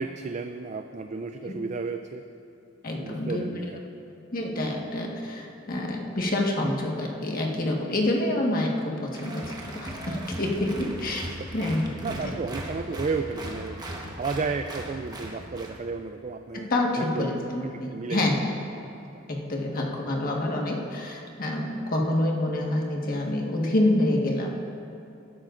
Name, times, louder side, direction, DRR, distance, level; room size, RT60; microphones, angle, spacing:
voice 1, 0.0-2.2 3.0-3.8 11.3-11.4 12.0-16.7 17.0-18.3 19.1-19.2, right 4 dB, 35° right, 7 dB, 0.4 m, -33 dB
voice 2, 2.8-3.4 4.3-11.3 11.5-11.9 12.2-12.3 16.5-18.3 19.3-24.6, left 1 dB, 45° left, -1 dB, 1.5 m, -27 dB
Applause, 9.1-15.8, right 1 dB, 20° right, 1.1 m, -38 dB
17.5 x 12.0 x 2.6 m, 2.8 s
head